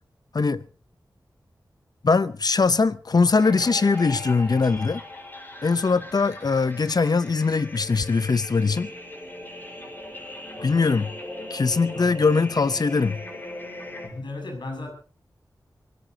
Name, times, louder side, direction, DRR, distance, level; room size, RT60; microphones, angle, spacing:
voice 1, 2.0-5.0 5.6-8.9 10.6-11.1 11.5-13.2, left 4 dB, 60° left, 0.7 m, -21 dB
sound 1, 3.4-14.1, left 1 dB, 25° left, 4.7 m, -39 dB
voice 2, 10.6-11.0 11.9-12.3 14.0-14.9, left 2 dB, 75° left, 6.7 m, -37 dB
24.0 x 18.0 x 2.8 m
wide cardioid pair, 70°, 8 cm